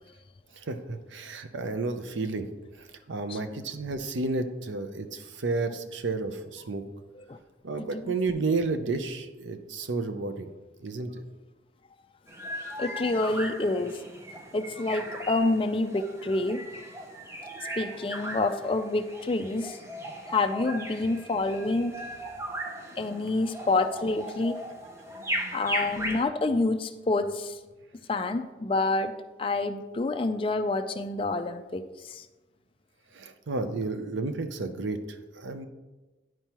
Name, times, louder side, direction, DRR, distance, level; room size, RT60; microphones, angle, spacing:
voice 1, 0.6-2.5 2.8-6.8 7.6-10.5 10.8-11.2 23.1-23.3 25.3-25.6 33.1-35.7, right 3 dB, 85° right, 9 dB, 0.6 m, -32 dB
voice 2, 7.8-8.1 12.8-14.0 14.5-16.6 17.8-19.8 20.3-22.0 23.0-24.5 25.5-27.6 28.1-29.1 29.4-32.3, left 2 dB, 30° left, 8 dB, 0.4 m, -28 dB
sound 1, 12.3-26.2, right 1 dB, 15° right, 0.6 m, -38 dB
10.5 x 4.5 x 2.9 m, 1.2 s
head